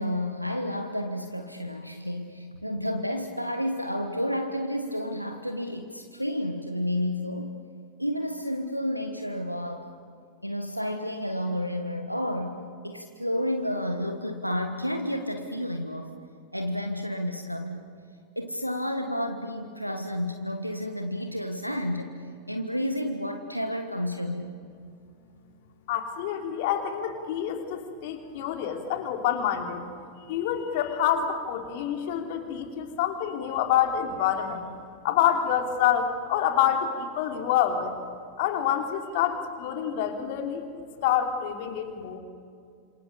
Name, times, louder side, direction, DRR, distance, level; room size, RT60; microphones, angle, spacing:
voice 1, 0.0-7.5 8.0-9.9 10.4-16.2 16.5-17.8 18.3-24.6, left 1 dB, 90° left, 5 dB, 1.5 m, -31 dB
voice 2, 25.9-29.8 30.3-34.6 35.0-37.9 38.4-42.2, left 9 dB, 50° left, 5 dB, 3.2 m, -27 dB
28.5 x 27.5 x 6.9 m, 2.3 s
figure-of-eight pair, 90°, 0 cm